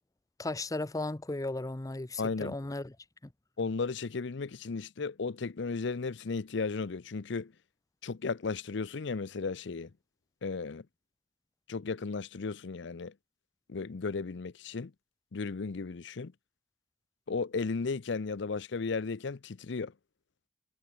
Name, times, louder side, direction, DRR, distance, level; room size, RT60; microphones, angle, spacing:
voice 1, 0.4-2.9, left 2 dB, 20° left, 0.7 m, -35 dB
voice 2, 2.2-2.5 3.6-7.5 8.0-9.9 10.4-10.9 11.7-13.1 13.7-14.9 15.3-16.3 17.3-19.9, left 4 dB, 65° left, 0.6 m, -35 dB
head